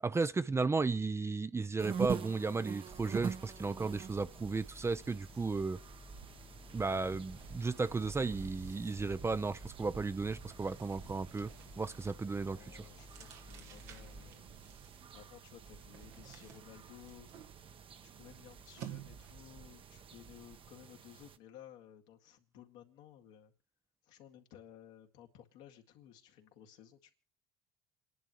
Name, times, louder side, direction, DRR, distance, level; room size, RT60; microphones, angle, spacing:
voice 1, 0.0-5.8 6.7-11.5 11.8-12.9, right 4 dB, 20° right, 0.6 m, -34 dB
sound 1, 1.8-21.4, right 7 dB, 45° right, 1.1 m, -46 dB
sound 2, 2.9-14.3, left 4 dB, 30° left, 1.3 m, -56 dB
sound 3, 6.3-19.6, right 9 dB, 80° right, 1.4 m, -56 dB
voice 2, 10.9-11.3 12.4-14.8 15.1-17.3 18.0-23.5 24.0-27.1, left 10 dB, 75° left, 2.1 m, -57 dB
28.5 x 11.0 x 3.0 m
hypercardioid pair, 65°, 12 cm